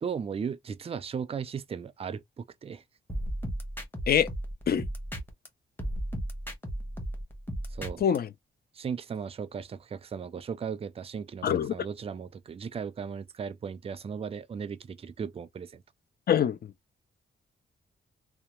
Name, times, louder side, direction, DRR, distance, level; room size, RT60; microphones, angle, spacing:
voice 1, 0.0-2.8 7.7-8.0 8.7-15.8, right 6 dB, 30° right, 0.4 m, -36 dB
sound 1, 3.1-5.5 5.8-8.2, equal, 10° left, 1.0 m, -35 dB
voice 2, 8.0-8.3 11.4-11.7 16.3-16.7, left 8 dB, 50° left, 0.5 m, -24 dB
2.8 x 2.3 x 2.9 m
wide cardioid pair, 135°, 20 cm